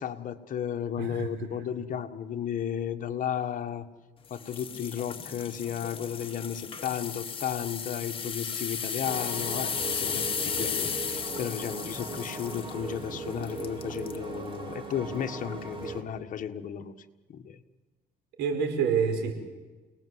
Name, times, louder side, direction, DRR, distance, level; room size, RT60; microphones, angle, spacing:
voice 1, 0.0-3.9 4.3-16.9 17.3-17.6, left 9 dB, 50° left, 7 dB, 1.7 m, -34 dB
voice 2, 1.0-1.3 18.4-19.4, right 6 dB, 85° right, 5 dB, 5.1 m, -27 dB
sound 1, 4.3-14.2 14.7-15.0 15.5-15.6, left 6 dB, 30° left, 2.0 m, -35 dB
sound 2, 9.0-16.0, right 3 dB, 30° right, 4.5 m, -39 dB
29.0 x 19.0 x 8.1 m, 1.3 s
cardioid pair, 110°, 17 cm